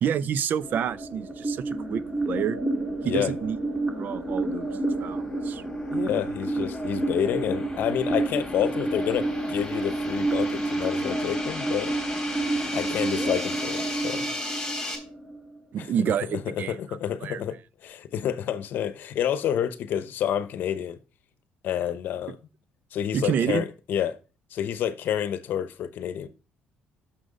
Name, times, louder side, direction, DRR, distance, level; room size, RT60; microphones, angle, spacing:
voice 1, 0.0-2.6 3.0-3.6 4.0-4.7 5.0-5.6 15.7-16.7 17.2-17.4 23.1-23.6, right 8 dB, 55° right, 0.5 m, -28 dB
sound 1, 0.6-15.6, right 2 dB, 15° right, 1.9 m, -30 dB
sound 2, 4.5-15.0, left 2 dB, 15° left, 3.4 m, -37 dB
voice 2, 5.9-12.0 12.7-14.3 15.8-21.0 21.6-22.4 22.9-24.2 24.5-26.3, left 9 dB, 65° left, 0.8 m, -29 dB
6.3 x 6.2 x 5.2 m
cardioid pair, 95°, 4 cm